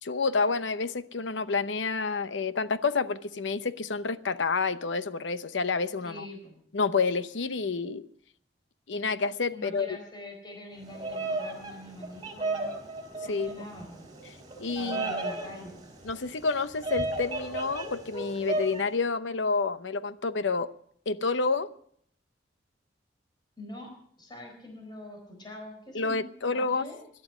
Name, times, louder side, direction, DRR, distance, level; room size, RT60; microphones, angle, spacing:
voice 1, 0.0-6.3 6.7-8.1 8.9-9.9 13.2-13.5 14.6-15.1 16.0-20.7 21.1-21.7 25.9-26.9, left 4 dB, 90° left, 13 dB, 0.8 m, -29 dB
voice 2, 6.0-6.5 9.5-12.7 13.2-14.0 14.8-15.8 23.6-23.9 24.2-27.0, left 1 dB, 25° left, 2 dB, 4.3 m, -44 dB
Bird vocalization bird call bird song, 10.8-18.8, right 2 dB, 25° right, 4.3 m, -35 dB
20.5 x 12.0 x 5.0 m, 0.64 s
head